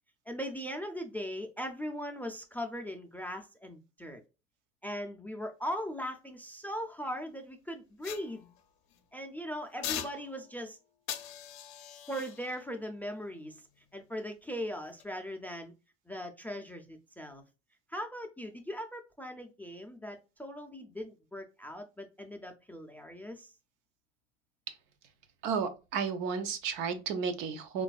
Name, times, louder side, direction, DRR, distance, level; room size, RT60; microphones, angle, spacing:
voice 1, 0.3-4.2 4.8-8.5 9.1-10.8 12.1-13.6 13.9-15.7 16.1-17.4 17.9-23.5, equal, 5° left, 0.4 m, -39 dB
sound 1, 8.0-9.0 9.8-10.6 11.1-14.3 14.8-15.0, left 11 dB, 50° left, 0.6 m, -43 dB
voice 2, 25.4-27.8, right 6 dB, 60° right, 0.7 m, -33 dB
3.8 x 2.5 x 2.2 m
hypercardioid pair, 85°, 36 cm